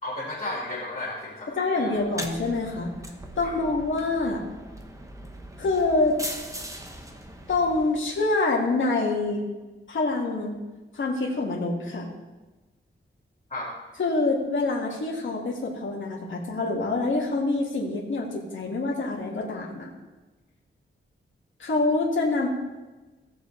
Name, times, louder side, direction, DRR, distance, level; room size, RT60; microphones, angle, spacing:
voice 1, 0.0-2.0 3.4-3.5 13.5-13.7, left 1 dB, 30° left, -7 dB, 2.2 m, -34 dB
voice 2, 1.5-2.9 3.4-4.4 5.6-6.2 7.5-9.4 9.9-10.6 10.9-12.1 14.0-19.9 21.6-22.5, left 3 dB, 65° left, -3 dB, 1.9 m, -26 dB
sound 1, 1.9-8.3, right 1 dB, 15° right, 1.0 m, -40 dB
17.0 x 6.9 x 3.2 m, 1.2 s
wide cardioid pair, 120°, 21 cm